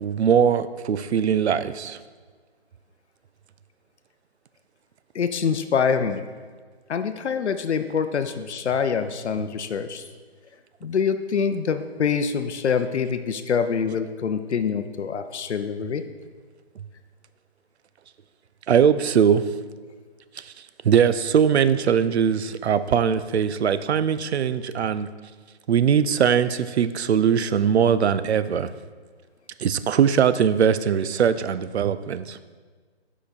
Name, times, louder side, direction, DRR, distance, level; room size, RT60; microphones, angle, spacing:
voice 1, 0.0-2.0 18.7-19.4 20.8-25.1 25.7-28.7 29.6-32.4, right 8 dB, 75° right, 13 dB, 0.5 m, -21 dB
voice 2, 5.1-6.3 6.9-10.1 10.8-16.0, left 6 dB, 85° left, 9 dB, 0.5 m, -25 dB
5.6 x 5.1 x 4.1 m, 1.5 s
figure-of-eight pair, 160°, 33 cm